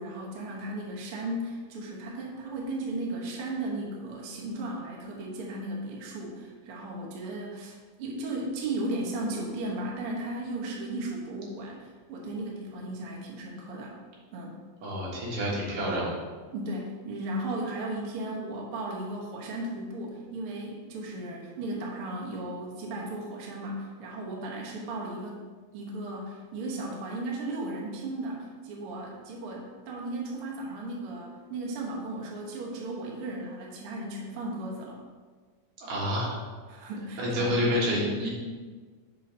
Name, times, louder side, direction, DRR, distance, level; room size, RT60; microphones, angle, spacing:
voice 1, 0.0-13.9 14.3-14.6 16.5-25.4 25.7-35.0 36.7-37.6, right 2 dB, 60° right, -2 dB, 1.6 m, -35 dB
voice 2, 14.8-16.1 35.8-36.3 37.2-38.3, equal, 80° right, -6 dB, 3.3 m, -28 dB
7.0 x 3.9 x 5.4 m, 1.5 s
omnidirectional pair, 3.7 m